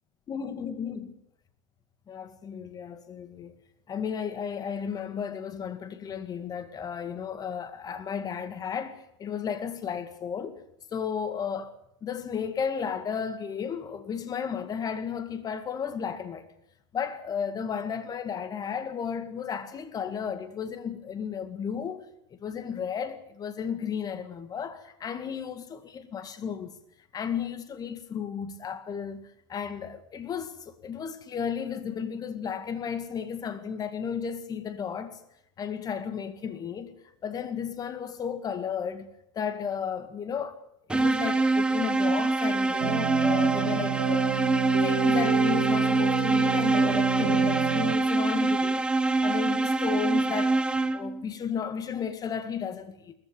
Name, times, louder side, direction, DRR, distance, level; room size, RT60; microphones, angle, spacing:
voice 1, 0.3-1.1 2.1-3.5 3.9-10.6 10.9-11.7 12.0-16.5 16.9-26.7 27.1-35.2 35.6-36.9 37.2-40.6 40.9-44.3 44.8-50.6 50.9-53.1, left 7 dB, 25° left, 2.1 m, -34 dB
sound 1, 40.9-51.2, right 2 dB, 5° right, 0.8 m, -25 dB
sound 2, 42.8-48.0, right 14 dB, 85° right, 0.9 m, -30 dB
19.5 x 15.0 x 9.3 m
supercardioid pair, 120°, 14 cm